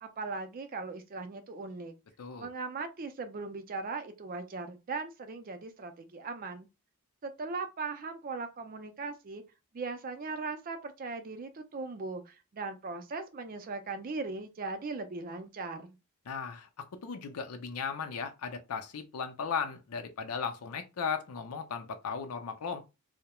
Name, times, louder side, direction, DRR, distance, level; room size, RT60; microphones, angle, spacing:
voice 1, 0.0-1.9 2.4-6.7 7.2-9.4 9.7-16.0, right 3 dB, 40° right, 0.4 m, -39 dB
voice 2, 2.2-2.5 16.3-22.9, left 6 dB, 85° left, 0.5 m, -36 dB
2.2 x 2.0 x 2.9 m
head